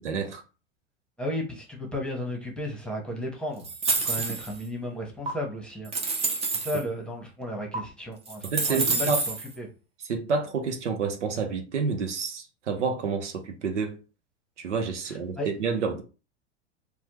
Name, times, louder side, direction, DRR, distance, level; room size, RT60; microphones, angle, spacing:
voice 1, 0.0-0.4 8.4-9.2 10.0-14.0 14.6-16.0, right 5 dB, 85° right, 0.8 m, -29 dB
voice 2, 1.2-3.7 4.0-5.9 6.5-8.4 8.7-9.1 9.6-9.7 15.4-15.5, left 1 dB, 5° left, 1.0 m, -33 dB
sound 1, 3.6-4.6 5.3-5.4 5.9-6.8 7.7-7.8 8.3-9.5, right 4 dB, 20° right, 0.6 m, -28 dB
3.2 x 2.3 x 2.9 m
hypercardioid pair, 95°, 35 cm